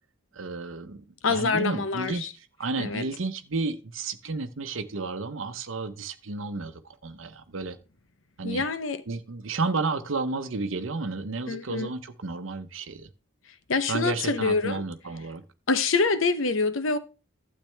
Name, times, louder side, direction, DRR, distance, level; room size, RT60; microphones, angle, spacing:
voice 1, 0.3-7.8 8.4-8.6 9.1-13.1 13.9-15.4, right 3 dB, 85° right, 0.8 m, -32 dB
voice 2, 1.2-2.3 2.8-3.0 8.4-9.0 11.5-11.9 13.7-14.8 15.7-17.0, left 4 dB, 90° left, 0.9 m, -26 dB
12.0 x 7.5 x 3.3 m
head